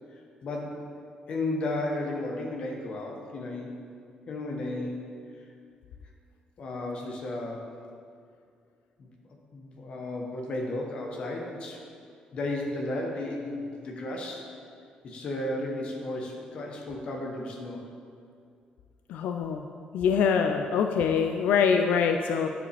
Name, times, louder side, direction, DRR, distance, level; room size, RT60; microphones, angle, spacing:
voice 1, 0.1-0.9 1.3-3.8 4.3-5.0 5.4-5.5 6.6-7.7 9.0-9.1 9.5-11.8 12.3-14.5 15.0-17.8, left 2 dB, 45° left, 0 dB, 1.0 m, -34 dB
voice 2, 19.1-19.6 19.9-22.5, left 6 dB, 90° left, 5 dB, 0.3 m, -24 dB
9.5 x 5.0 x 3.4 m, 2.3 s
cardioid pair, 175°, 3 cm